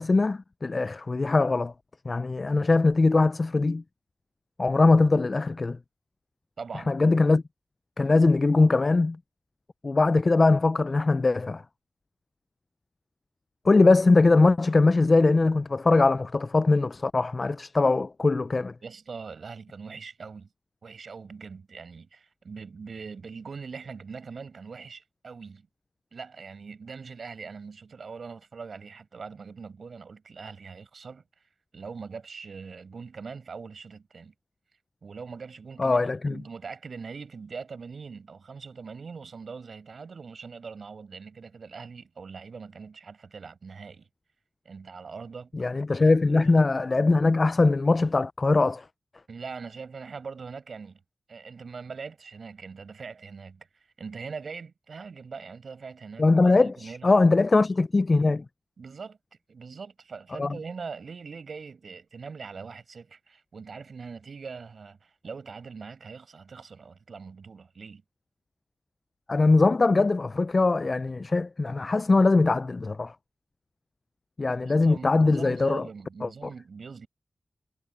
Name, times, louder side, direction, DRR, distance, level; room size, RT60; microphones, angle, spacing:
voice 1, 0.0-1.7 2.1-3.8 4.6-5.8 6.7-7.4 8.0-9.2 9.8-11.6 13.6-18.7 35.8-36.4 45.5-48.9 56.2-58.4 60.4-60.6 69.3-73.1 74.4-75.9 76.2-76.3, left 3 dB, 50° left, 0.4 m, -21 dB
voice 2, 6.6-6.9 18.8-20.5 20.8-25.7 26.1-31.2 31.7-34.3 35.0-44.1 44.7-45.5 46.3-46.5 49.3-51.0 51.3-57.1 58.8-59.2 59.5-68.0 74.6-77.1, right 5 dB, 75° right, 6.9 m, -42 dB
cardioid pair, 45°, 0 cm